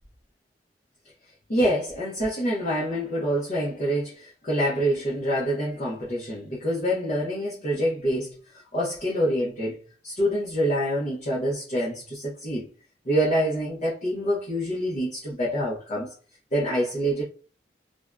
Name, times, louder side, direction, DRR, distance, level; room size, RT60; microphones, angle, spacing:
voice 1, 1.5-12.7 13.0-16.1 16.5-17.2, equal, 40° left, 0.6 m, -26 dB
2.5 x 2.1 x 2.3 m
head